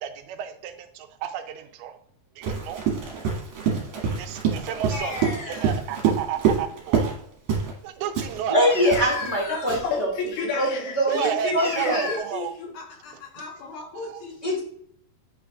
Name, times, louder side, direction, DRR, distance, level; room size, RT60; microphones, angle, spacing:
voice 1, 0.0-2.0 2.4-2.8 4.1-5.2 5.5-7.1 7.8-8.9 11.1-12.5 13.4-13.5 13.9-14.3, right 9 dB, 80° right, 7 dB, 2.5 m, -32 dB
Run, 2.4-7.2 7.5-7.8 8.2-10.0, right 6 dB, 60° right, 3.1 m, -26 dB
sound 1, 4.9-5.8 8.7-10.0 11.6-12.2, left 2 dB, 50° left, 2.9 m, -33 dB
voice 2, 8.5-12.0 14.4-14.6, equal, 30° left, -4 dB, 1.4 m, -24 dB
voice 3, 9.8-14.3, left 3 dB, 70° left, 1 dB, 2.8 m, -32 dB
8.6 x 4.8 x 2.4 m, 0.66 s
omnidirectional pair, 4.6 m